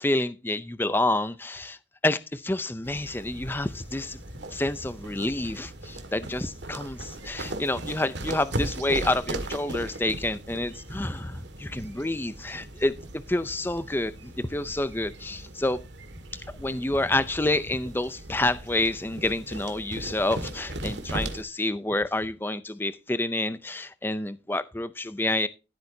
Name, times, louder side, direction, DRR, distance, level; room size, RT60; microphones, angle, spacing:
voice 1, 0.0-4.2 4.5-13.0 13.3-15.8 16.6-25.5, left 2 dB, 10° left, 0.5 m, -28 dB
sound 1, 2.8-21.4, right 1 dB, 75° right, 2.0 m, -38 dB
14.0 x 8.3 x 2.7 m
head